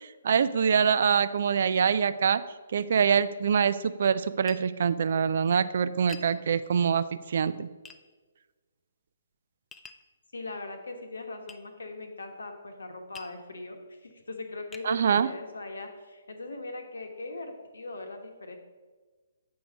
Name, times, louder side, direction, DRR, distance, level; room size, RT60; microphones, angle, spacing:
voice 1, 0.2-2.4 2.7-7.7 14.8-15.3, right 7 dB, 60° right, 14 dB, 0.4 m, -24 dB
Tap, 4.5-4.7 6.1-6.3 7.8-8.0 9.7-10.1 11.5-11.6 13.1-13.4 14.1-14.2 14.7-14.9, left 5 dB, 10° left, 0.4 m, -47 dB
voice 2, 10.3-18.6, left 2 dB, 80° left, 4 dB, 1.2 m, -40 dB
7.8 x 4.7 x 5.2 m, 1.4 s
figure-of-eight pair, 140°, 0 cm